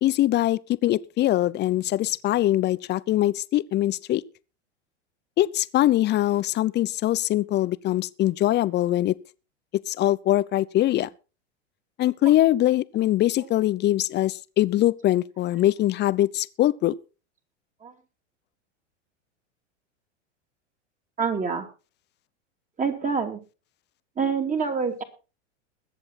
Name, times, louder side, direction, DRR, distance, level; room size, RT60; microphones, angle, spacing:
voice 1, 0.0-4.2 5.4-9.1 9.9-11.1 12.0-16.9, left 14 dB, 30° left, 0.7 m, -22 dB
voice 2, 21.2-21.7 22.8-23.4 24.2-25.0, right 5 dB, 20° right, 2.9 m, -26 dB
21.5 x 7.8 x 4.2 m
hypercardioid pair, 100°, 36 cm